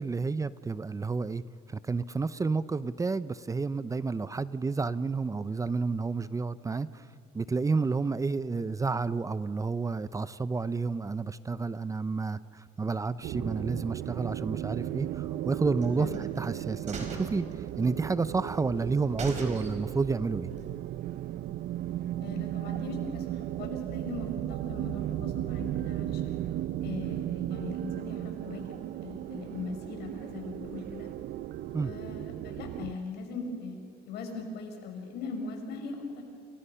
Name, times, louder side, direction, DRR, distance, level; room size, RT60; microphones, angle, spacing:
voice 1, 0.0-1.4 1.7-7.1 7.3-20.5 31.7-31.9, right 4 dB, 20° right, 15 dB, 0.6 m, -30 dB
sound 1, 13.2-32.9, right 13 dB, 65° right, 0.6 m, -35 dB
sound 2, 15.8-16.5 16.9-18.2 18.5-18.6 18.9-19.0 19.2-20.1 20.4-20.5, right 3 dB, 45° right, 4.9 m, -40 dB
voice 2, 22.2-26.4 26.8-31.1 31.8-33.8 34.1-36.2, left 4 dB, 80° left, 4 dB, 5.5 m, -40 dB
30.0 x 28.0 x 5.7 m, 2.4 s
cardioid pair, 110°, 17 cm